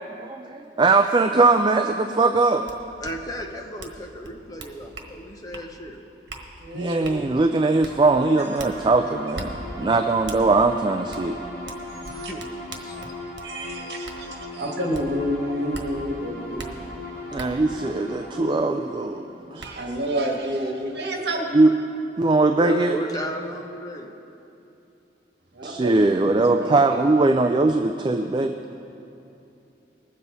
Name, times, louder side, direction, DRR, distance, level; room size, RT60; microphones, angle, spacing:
voice 1, 0.2-2.7 6.7-11.4 17.3-19.2 19.5-19.6 21.5-21.7 22.2-23.0 25.6-28.5, right 3 dB, 25° right, 5 dB, 0.4 m, -20 dB
sound 1, 2.7-2.8 3.0-3.1 3.8-4.0 4.2-5.1 5.5-5.7 6.3-6.4 7.0-7.2 7.8-7.9 8.6-8.7 9.3-9.5 10.3-10.4 11.1-11.2 11.7-13.5 14.0-14.2 14.9-15.0 15.7-15.9 16.6-16.7 17.4-17.5 19.0-19.1 19.6-19.7, right 3 dB, 85° right, 1.3 m, -38 dB
voice 2, 3.0-6.0 12.0-12.4 12.8-13.1 22.6-24.1, equal, 20° left, 2 dB, 1.0 m, -34 dB
voice 3, 6.6-7.2 8.4-8.5 8.8-8.9 12.2-12.3 12.9-13.0 13.4-16.7 19.6-21.5 25.5-27.4, equal, 65° right, 0 dB, 1.6 m, -29 dB
sound 2, 7.2-20.7, left 1 dB, 55° left, 2.4 m, -38 dB
20.5 x 7.5 x 4.0 m, 2.8 s
head